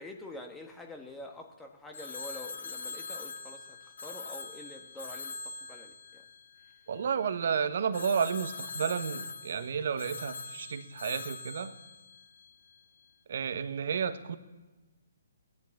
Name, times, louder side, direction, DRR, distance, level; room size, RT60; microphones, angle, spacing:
voice 1, 0.0-6.2, left 1 dB, 5° left, 3 dB, 1.4 m, -46 dB
Telephone, 1.9-7.2 7.9-12.8, left 4 dB, 65° left, 1.2 m, -43 dB
voice 2, 6.9-11.7 13.3-14.4, right 6 dB, 60° right, 12 dB, 1.1 m, -31 dB
18.0 x 10.5 x 7.2 m, 1.2 s
figure-of-eight pair, 135°, 0 cm